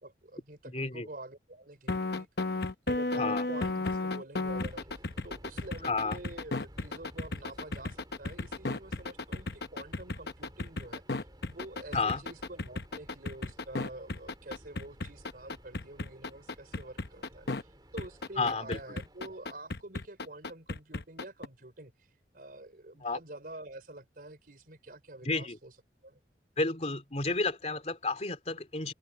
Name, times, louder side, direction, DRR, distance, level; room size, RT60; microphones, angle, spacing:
voice 1, 0.0-4.9 5.2-21.9 22.3-25.7 26.0-26.2, right 2 dB, 50° right, 4.6 m, -47 dB
voice 2, 0.7-1.1 3.2-3.5 5.8-6.2 11.9-12.2 18.4-18.8 23.0-23.2 25.2-25.6 26.6-28.9, left 3 dB, 35° left, 3.0 m, -31 dB
sound 1, 1.9-17.6 18.0-21.5, left 3 dB, 60° left, 0.9 m, -34 dB
Subway metro underground, 4.4-19.7, equal, 25° right, 4.3 m, -55 dB
head